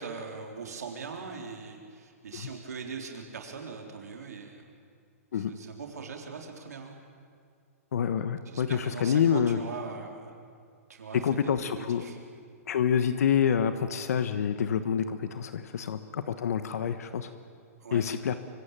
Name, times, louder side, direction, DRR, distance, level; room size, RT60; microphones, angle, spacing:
voice 1, 0.0-4.6 5.3-6.9 8.5-10.4 10.9-12.2 17.8-18.0, right 5 dB, 90° right, 2 dB, 3.8 m, -41 dB
voice 2, 7.9-9.6 11.2-12.0 12.7-17.3 17.9-18.3, left 8 dB, 75° left, 10 dB, 1.3 m, -27 dB
24.5 x 24.5 x 9.0 m, 2.2 s
hypercardioid pair, 140°, 8 cm